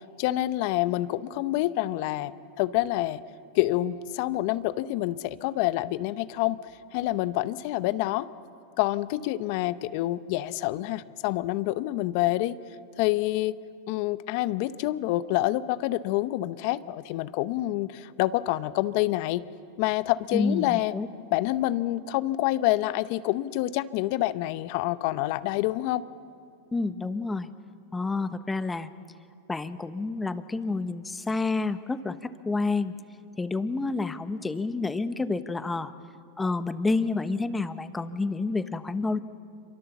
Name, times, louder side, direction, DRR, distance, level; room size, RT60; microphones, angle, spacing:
voice 1, 0.2-2.3 2.6-3.2 3.5-6.6 6.9-8.3 8.8-12.6 13.0-13.6 13.9-19.4 19.8-20.9 21.3-26.0, left 16 dB, 60° left, 14 dB, 0.8 m, -27 dB
voice 2, 20.3-21.1 26.7-27.5 27.9-28.9 29.5-32.9 33.4-35.9 36.4-39.2, left 3 dB, 15° left, 11 dB, 1.2 m, -29 dB
27.5 x 23.5 x 7.2 m, 2.5 s
hypercardioid pair, 105°, 0 cm